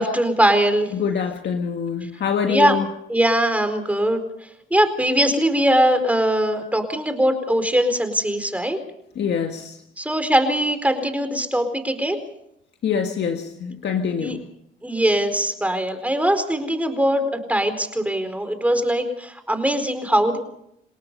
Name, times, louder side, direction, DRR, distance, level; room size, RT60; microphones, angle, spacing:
voice 1, 0.0-0.9 2.5-2.7 3.1-4.2 4.7-8.8 10.0-12.2 14.2-14.4 14.8-20.4, right 1 dB, 5° right, 8 dB, 4.3 m, -21 dB
voice 2, 0.9-2.9 9.2-9.8 12.8-14.5, left 7 dB, 60° left, 4 dB, 1.8 m, -25 dB
28.5 x 18.0 x 5.5 m, 0.76 s
cardioid pair, 90°, 20 cm